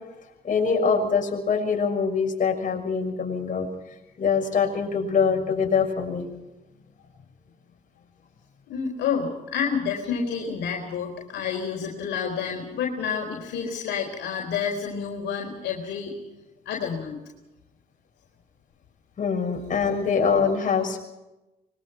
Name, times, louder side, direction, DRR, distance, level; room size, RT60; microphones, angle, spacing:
voice 1, 0.4-3.7 4.2-6.2 19.2-21.0, left 5 dB, 45° left, 1 dB, 6.4 m, -24 dB
voice 2, 8.7-16.1 16.7-17.2 19.9-20.0, left 6 dB, 70° left, 0 dB, 4.2 m, -29 dB
25.0 x 22.5 x 4.6 m, 0.99 s
supercardioid pair, 60°, 19 cm